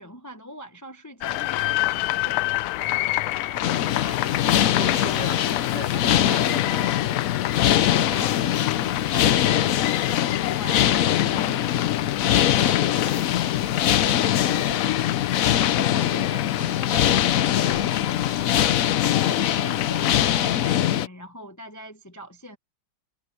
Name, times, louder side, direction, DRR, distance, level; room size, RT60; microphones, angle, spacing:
voice 1, 0.0-2.6 3.5-4.7 5.0-5.2 5.9-7.0 8.1-9.4 9.8-11.7 15.6-17.1 17.6-18.2 19.0-22.6, equal, 15° left, 0.7 m, -41 dB
sound 1, 1.2-20.5, left 16 dB, 90° left, 1.4 m, -30 dB
sound 2, 3.6-21.1, left 11 dB, 70° left, 0.8 m, -22 dB
voice 2, 4.7-6.7 7.4-7.7 8.0-8.3 12.7-13.6 14.0-15.2, right 2 dB, 55° right, 6.6 m, -40 dB
omnidirectional pair, 2.2 m